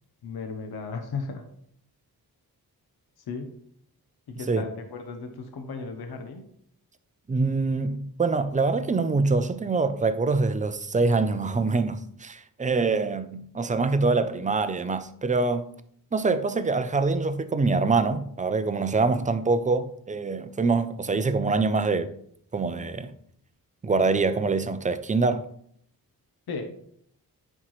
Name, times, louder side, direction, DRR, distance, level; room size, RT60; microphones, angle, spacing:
voice 1, 0.2-1.4 3.3-3.5 4.3-6.4 26.5-26.7, left 4 dB, 70° left, 0.9 m, -35 dB
voice 2, 4.4-4.7 7.3-15.7 16.1-22.1 22.5-23.1 23.8-25.5, right 3 dB, 20° right, 0.4 m, -25 dB
9.7 x 4.5 x 3.1 m
wide cardioid pair, 115°, 39 cm